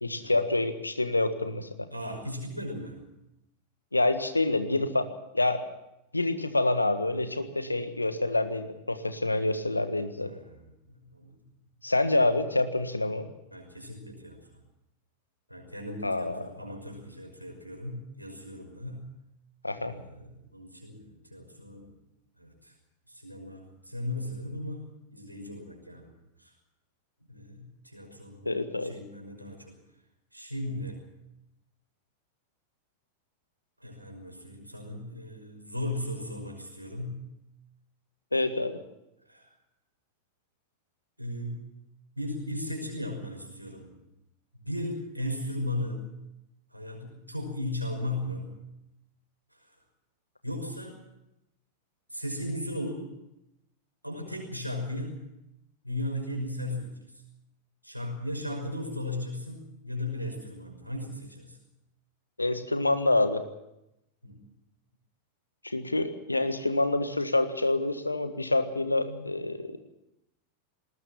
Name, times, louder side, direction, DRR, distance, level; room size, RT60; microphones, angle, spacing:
voice 1, 0.0-1.7 3.9-5.6 6.1-10.3 11.8-13.3 16.0-16.5 19.6-19.9 28.4-28.9 38.3-38.7 62.4-63.4 65.6-69.8, left 2 dB, 85° left, 10 dB, 1.5 m, -27 dB
voice 2, 1.9-3.0 10.2-11.3 13.5-14.6 15.5-19.0 19.7-21.9 22.4-22.7 23.1-26.1 26.4-26.5 27.3-28.5 28.8-29.7 30.3-31.0 33.8-37.2 39.3-39.5 41.2-41.7 42.2-43.9 44.5-46.1 46.7-48.6 49.5-49.8 50.4-51.0 52.1-53.1 54.0-55.1 55.8-57.2 57.8-61.6 64.2-64.4 69.0-69.3, left 1 dB, 90° right, 2 dB, 5.8 m, -37 dB
19.5 x 19.5 x 7.3 m, 0.87 s
figure-of-eight pair, 90°, 0 cm